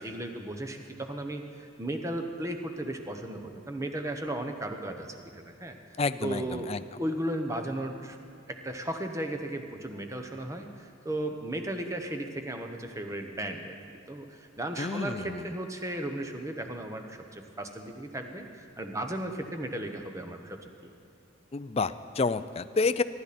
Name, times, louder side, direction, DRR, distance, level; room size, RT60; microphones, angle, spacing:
voice 1, 0.0-5.8 6.2-6.7 7.0-8.2 8.5-20.9, right 1 dB, 15° right, 5 dB, 1.0 m, -35 dB
voice 2, 6.0-6.8 14.8-15.5 21.5-23.0, left 4 dB, 30° left, 13 dB, 0.4 m, -29 dB
23.5 x 12.0 x 4.2 m, 2.6 s
head